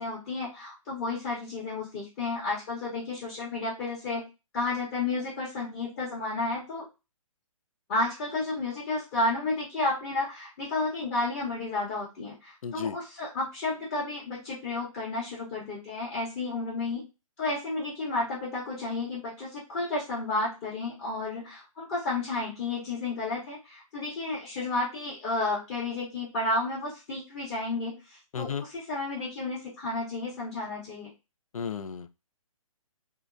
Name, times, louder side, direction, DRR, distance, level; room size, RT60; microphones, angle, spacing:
voice 1, 0.0-4.2 4.5-6.9 7.9-17.0 17.4-31.1, left 2 dB, 30° left, -6 dB, 0.9 m, -32 dB
voice 2, 12.6-13.0 28.3-28.6 31.5-32.1, left 6 dB, 75° left, 11 dB, 0.4 m, -33 dB
2.8 x 2.2 x 2.4 m, 0.27 s
figure-of-eight pair, 140°, 18 cm